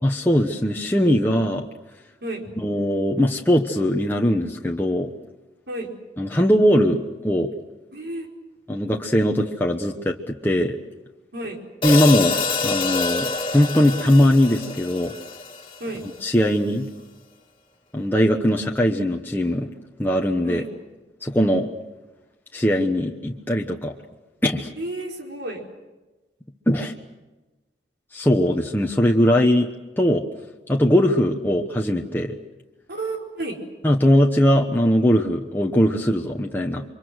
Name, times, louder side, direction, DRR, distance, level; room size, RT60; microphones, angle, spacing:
voice 1, 0.0-1.7 2.6-5.1 6.2-7.5 8.7-10.8 11.8-12.4 12.6-15.1 16.2-16.9 17.9-19.7 20.0-20.6 21.2-21.7 22.5-23.9 24.4-24.7 26.7-26.9 28.1-29.7 30.0-30.2 30.7-32.4 33.8-36.8, equal, 10° left, 0 dB, 1.1 m, -20 dB
voice 2, 7.9-8.3 11.3-11.6 15.8-16.0 20.4-20.7 24.8-25.6 32.9-33.6, right 2 dB, 65° right, 1 dB, 4.6 m, -31 dB
Hi-hat, 11.8-16.1, left 4 dB, 30° left, 2.6 m, -26 dB
29.0 x 24.5 x 6.4 m, 1.1 s
head